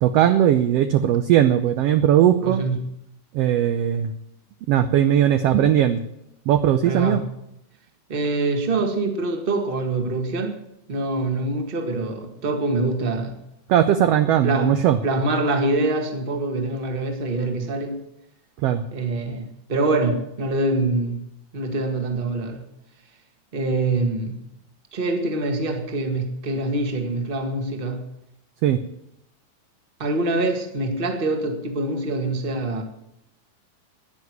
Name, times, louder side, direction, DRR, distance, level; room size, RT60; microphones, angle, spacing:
voice 1, 0.0-2.6 3.3-4.1 4.7-6.0 6.5-7.2 13.7-15.0 18.6-18.8 28.6-28.8, right 10 dB, 75° right, 10 dB, 1.4 m, -18 dB
voice 2, 2.4-2.8 6.8-7.2 8.1-10.6 10.9-13.4 14.4-14.7 15.0-18.0 18.9-21.2 21.5-22.6 23.5-24.4 24.9-28.0 30.0-32.8, right 2 dB, 25° right, 5 dB, 1.4 m, -24 dB
11.0 x 9.7 x 9.5 m, 0.82 s
omnidirectional pair, 3.5 m